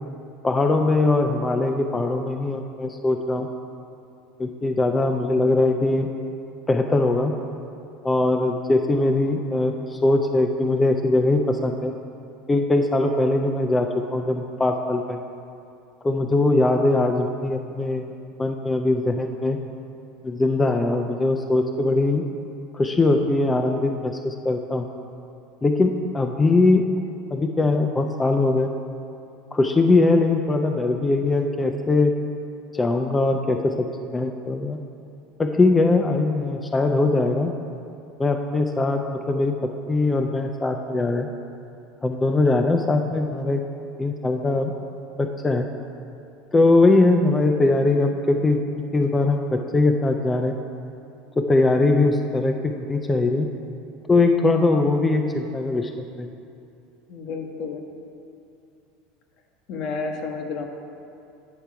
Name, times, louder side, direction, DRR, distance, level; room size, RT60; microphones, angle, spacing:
voice 1, 0.4-3.5 4.4-6.1 6.7-7.3 8.0-11.9 12.5-15.2 16.0-18.0 18.4-19.6 20.2-22.2 22.7-24.8 25.6-26.8 27.3-28.7 29.5-32.1 32.7-33.9 34.1-34.8 35.4-37.5 38.2-41.3 42.0-43.6 44.0-44.7 45.2-45.7 46.5-48.6 48.9-50.6 51.4-52.5 52.9-53.5 54.1-55.9 56.2-56.3, left 2 dB, 15° left, 4 dB, 0.5 m, -21 dB
voice 2, 57.1-57.8 59.7-60.7, left 4 dB, 60° left, 3 dB, 1.0 m, -30 dB
8.9 x 5.6 x 4.6 m, 2.6 s
supercardioid pair, 105°, 0 cm